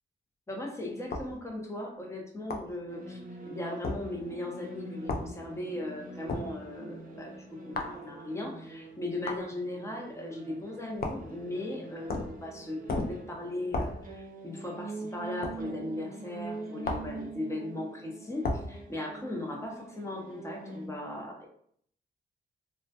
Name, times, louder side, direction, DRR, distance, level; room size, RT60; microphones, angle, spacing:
voice 1, 0.5-3.2 3.5-7.3 7.7-12.8 13.1-21.5, left 1 dB, 15° left, 0 dB, 0.6 m, -38 dB
sound 1, 1.1-1.3 2.5-2.7 3.8-4.0 5.1-5.3 6.3-6.5 7.7-8.0 9.3-9.4 11.0-11.3 12.1-12.4 12.9-13.2 13.7-14.0 15.4-15.6 16.8-17.1 18.4-18.7, left 2 dB, 50° left, 0.4 m, -33 dB
sound 2, 2.9-20.9, right 3 dB, 45° right, 0.6 m, -45 dB
2.1 x 2.1 x 2.7 m, 0.65 s
cardioid pair, 70°, 20 cm